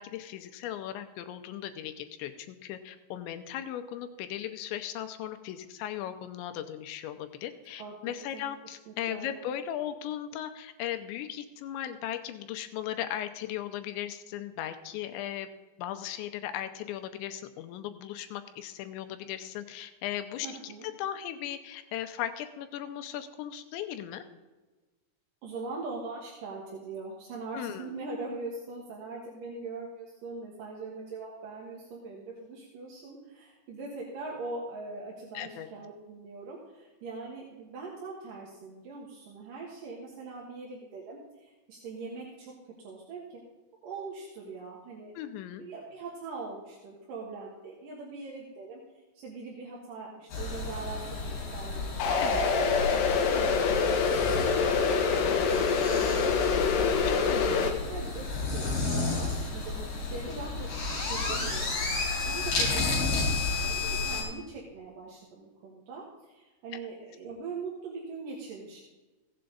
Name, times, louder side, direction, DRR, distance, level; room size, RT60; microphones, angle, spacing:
voice 1, 0.0-15.5 15.8-24.2 27.5-28.0 35.3-35.7 45.2-45.6 52.2-52.4 57.1-57.7 62.6-63.0, left 11 dB, 85° left, 8 dB, 3.0 m, -37 dB
voice 2, 7.8-8.4 8.9-9.4 20.4-20.9 25.4-42.5 42.8-43.4 43.8-45.1 45.6-48.8 49.1-56.9 57.9-61.8 62.2-63.3 63.6-68.8, right 3 dB, 60° right, -4 dB, 2.7 m, -41 dB
sound 1, 50.3-64.2, left 3 dB, 45° left, 4.3 m, -32 dB
sound 2, 52.0-57.7, left 5 dB, 70° left, 2.2 m, -26 dB
16.0 x 7.8 x 3.9 m, 1.2 s
omnidirectional pair, 5.3 m